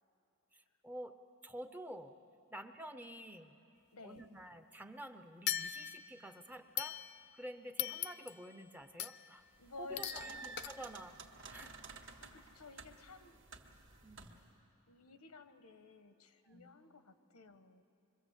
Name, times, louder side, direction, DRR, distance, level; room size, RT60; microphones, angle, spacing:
voice 1, 0.5-2.2 2.5-3.6 4.0-7.0 7.3-9.4 9.8-11.2 11.5-11.8 14.0-14.4 16.4-16.8, right 1 dB, 5° right, 8 dB, 0.7 m, -50 dB
voice 2, 3.9-4.3 9.6-10.5 12.2-13.4 14.9-17.8, left 3 dB, 85° left, 10 dB, 1.2 m, -53 dB
sound 1, 5.5-6.2 6.8-7.4 7.8-8.5 9.0-9.4 10.0-10.3 10.6-10.7, left 11 dB, 45° left, 0.6 m, -40 dB
sound 2, 9.5-14.5, right 3 dB, 55° right, 1.8 m, -52 dB
26.5 x 23.0 x 8.1 m, 2.7 s
head